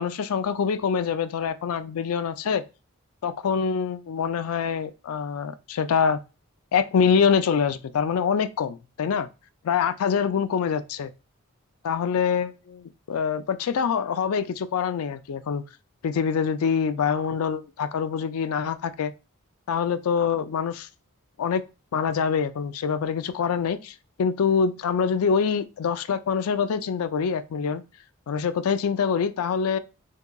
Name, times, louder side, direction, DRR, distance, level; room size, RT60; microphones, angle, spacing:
voice 1, 0.0-2.6 3.2-6.2 6.7-9.3 9.6-11.1 11.8-15.6 16.0-19.1 19.7-20.9 21.4-21.6 21.9-27.8 28.3-29.8, left 6 dB, 85° left, 0.4 m, -25 dB
3.7 x 2.7 x 2.3 m
head